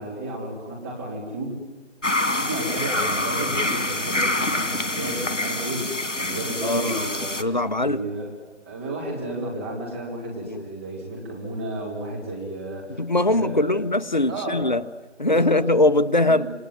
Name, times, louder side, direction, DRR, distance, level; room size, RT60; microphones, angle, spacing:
voice 1, 0.0-1.6 2.4-7.4 7.8-8.3 8.7-13.8 14.3-14.7 15.2-15.6 16.2-16.5, right 1 dB, 10° right, -4 dB, 3.2 m, -32 dB
sound 1, 2.0-7.4, left 2 dB, 85° left, 2.2 m, -26 dB
voice 2, 6.6-7.1 7.4-8.0 10.5-10.6 13.0-14.8 15.2-16.5, left 2 dB, 40° left, 12 dB, 0.9 m, -21 dB
27.5 x 21.5 x 9.3 m, 1.2 s
figure-of-eight pair, 165°, 36 cm